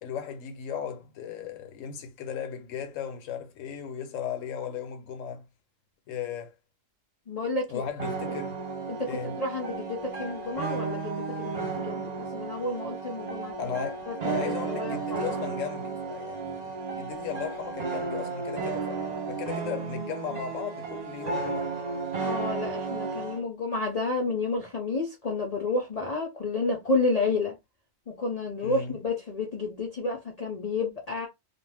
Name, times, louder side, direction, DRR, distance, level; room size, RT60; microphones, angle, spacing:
voice 1, 0.0-5.4 6.1-6.5 7.7-8.6 9.1-9.4 13.6-21.7 28.6-29.0, left 7 dB, 75° left, 1.1 m, -36 dB
voice 2, 7.3-7.9 8.9-11.5 11.8-13.5 14.1-14.2 14.4-15.4 22.2-27.6 28.2-31.3, left 3 dB, 45° left, 0.5 m, -30 dB
sound 1, 8.0-23.4, right 4 dB, 45° right, 0.6 m, -33 dB
2.5 x 2.1 x 3.2 m
omnidirectional pair, 1.4 m